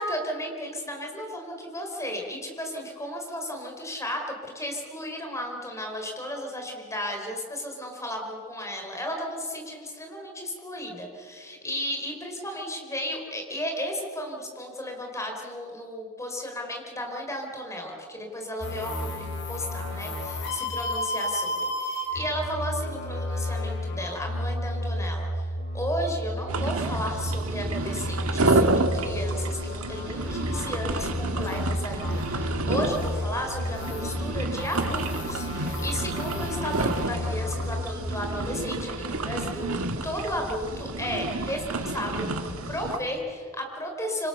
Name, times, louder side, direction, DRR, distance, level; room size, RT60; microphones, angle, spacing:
voice 1, 0.0-44.3, equal, 15° left, 2 dB, 4.6 m, -34 dB
sound 1, 18.6-37.9, left 1 dB, 55° left, 5.3 m, -32 dB
sound 2, 26.5-43.0, right 2 dB, 80° right, 1.9 m, -30 dB
26.5 x 25.5 x 6.9 m, 2.2 s
head